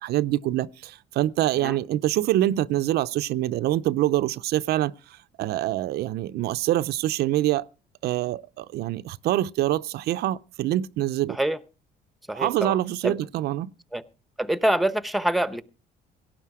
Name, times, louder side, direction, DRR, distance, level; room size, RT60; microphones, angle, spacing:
voice 1, 0.0-7.7 8.0-11.4 12.3-13.7, right 14 dB, 75° right, 0.6 m, -25 dB
voice 2, 11.3-11.6 12.3-12.8 13.0-13.2 13.9-14.0 14.4-15.7, right 1 dB, ahead, 0.8 m, -25 dB
17.5 x 10.0 x 4.8 m
cardioid pair, 110°, 17 cm